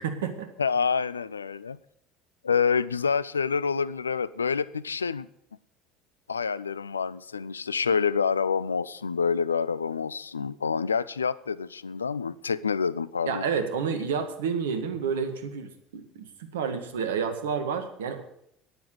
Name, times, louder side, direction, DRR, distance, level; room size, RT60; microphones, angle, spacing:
voice 1, 0.0-0.5 13.3-18.2, right 6 dB, 75° right, 7 dB, 1.8 m, -30 dB
voice 2, 0.6-1.8 2.4-5.3 6.3-13.4, left 6 dB, 85° left, 18 dB, 0.4 m, -27 dB
10.0 x 9.1 x 9.4 m, 0.74 s
figure-of-eight pair, 65°, 0 cm